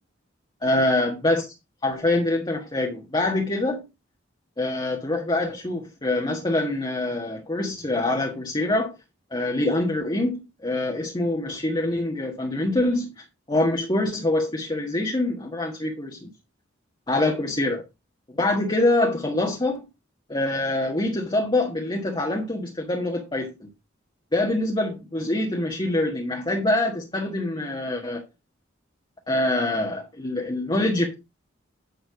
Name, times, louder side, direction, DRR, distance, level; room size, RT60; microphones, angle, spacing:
voice 1, 0.6-1.4 1.8-3.8 4.6-8.9 9.3-16.3 17.1-17.8 18.3-19.9 20.3-23.7 24.3-28.2 29.3-31.1, left 2 dB, 25° left, 1.5 m, -25 dB
9.5 x 5.7 x 4.7 m
head